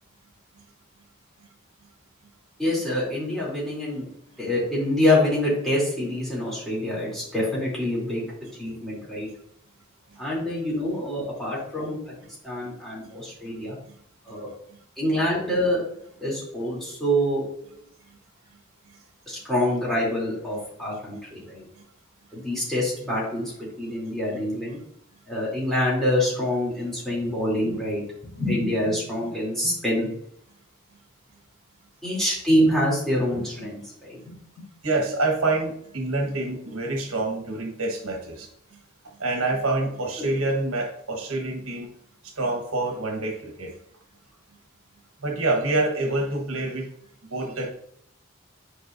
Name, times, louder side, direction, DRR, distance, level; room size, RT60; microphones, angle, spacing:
voice 1, 2.6-4.1 4.4-8.2 8.6-9.3 10.2-12.0 12.4-13.8 14.3-14.5 15.0-15.9 16.2-17.6 19.3-21.6 22.3-24.8 25.3-28.0 28.4-30.1 32.0-34.4 40.2-40.3, left 1 dB, ahead, -7 dB, 2.9 m, -26 dB
voice 2, 34.8-38.5 39.2-41.9 42.2-43.7 45.2-46.9 47.3-47.7, right 2 dB, 85° right, 2 dB, 1.3 m, -26 dB
10.0 x 5.0 x 2.6 m, 0.69 s
head